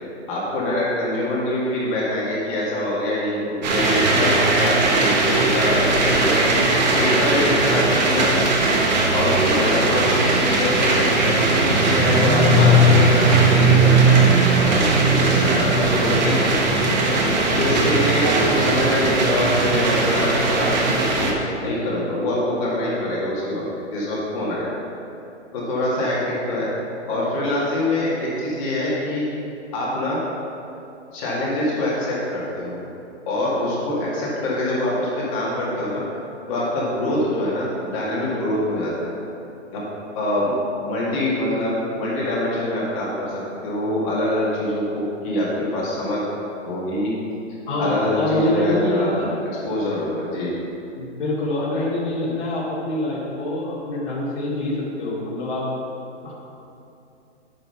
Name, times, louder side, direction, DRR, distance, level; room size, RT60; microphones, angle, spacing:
voice 1, 0.3-6.4 6.9-8.4 9.1-16.8 17.5-21.3 21.6-23.6 23.9-24.7 25.5-26.7 27.1-29.2 29.7-30.2 31.1-32.8 33.3-36.0 36.5-39.1 39.7-39.8 40.1-40.6 40.8-46.3 46.6-47.1 47.8-49.2 49.6-50.5, left 1 dB, 30° left, -6 dB, 2.0 m, -24 dB
sound 1, 3.6-21.3, right 2 dB, 35° right, 1.1 m, -18 dB
sound 2, 3.7-15.8, equal, ahead, 1.1 m, -31 dB
voice 2, 47.7-49.3 51.0-55.7 56.2-56.3, left 1 dB, 45° left, -8 dB, 2.4 m, -25 dB
8.9 x 6.3 x 5.6 m, 2.8 s
hypercardioid pair, 160°, 36 cm